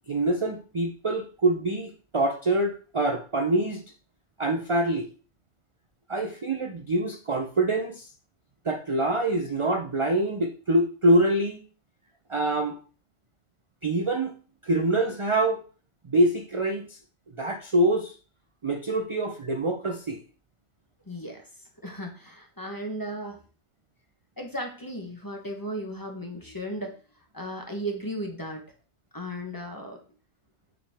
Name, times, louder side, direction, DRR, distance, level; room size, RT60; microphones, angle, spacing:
voice 1, 0.1-3.8 4.4-5.1 6.1-8.1 8.6-11.6 12.3-12.8 13.8-14.3 14.6-15.6 16.1-17.0 17.3-18.2 18.6-20.2, right 1 dB, 40° right, 4 dB, 0.5 m, -25 dB
voice 2, 21.1-21.4 21.8-23.4 24.4-26.9 27.3-28.6 29.1-30.0, equal, 15° left, 3 dB, 1.0 m, -35 dB
7.0 x 4.8 x 3.5 m, 0.38 s
omnidirectional pair, 1.3 m